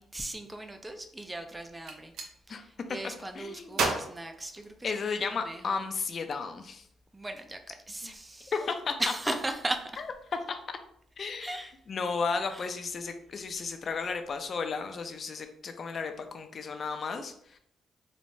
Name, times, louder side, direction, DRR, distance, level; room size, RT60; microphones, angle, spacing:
voice 1, 0.0-2.1 2.5-5.8 7.1-8.5 9.0-10.0 11.4-11.7 12.5-12.7, right 1 dB, 20° right, 6 dB, 0.4 m, -37 dB
Gunshot gunfire, 1.7-2.3 3.7-5.2, right 3 dB, 75° right, 0.5 m, -33 dB
voice 2, 3.3-3.9 4.8-6.8 8.0-8.1 8.5-8.9 11.2-11.6 11.9-17.6, left 5 dB, 55° left, 7 dB, 0.4 m, -34 dB
3.1 x 2.1 x 2.6 m, 0.68 s
supercardioid pair, 60°, 0 cm